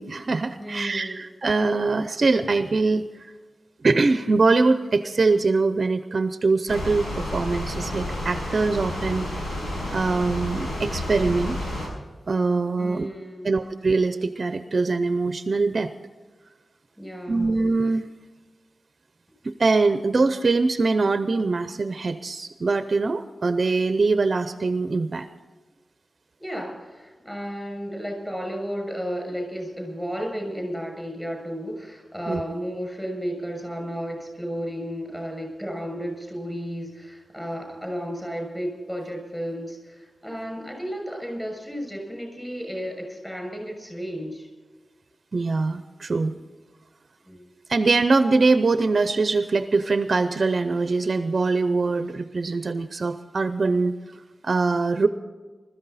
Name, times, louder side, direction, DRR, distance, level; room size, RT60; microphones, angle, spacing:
voice 1, 0.0-3.3 3.8-9.5 9.9-11.6 12.3-13.1 13.4-15.9 17.3-18.1 19.4-25.3 32.3-32.4 45.3-46.3 47.7-55.1, right 3 dB, 45° right, 10 dB, 0.6 m, -23 dB
voice 2, 0.6-1.2 12.8-13.6 17.0-17.5 26.4-44.5 47.2-47.4, equal, 5° left, 2 dB, 6.5 m, -33 dB
sound 1, 6.7-11.9, left 1 dB, 90° left, 6.3 m, -30 dB
21.0 x 13.5 x 4.1 m, 1.4 s
wide cardioid pair, 145°, 0 cm